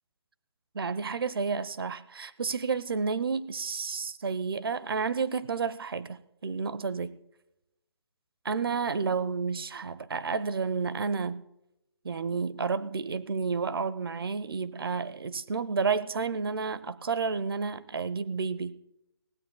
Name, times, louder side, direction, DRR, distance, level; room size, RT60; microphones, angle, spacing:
voice 1, 0.7-7.1 8.4-11.4 12.0-18.8, right 5 dB, 60° right, 0.7 m, -31 dB
19.5 x 16.5 x 2.2 m
hypercardioid pair, 175°, 14 cm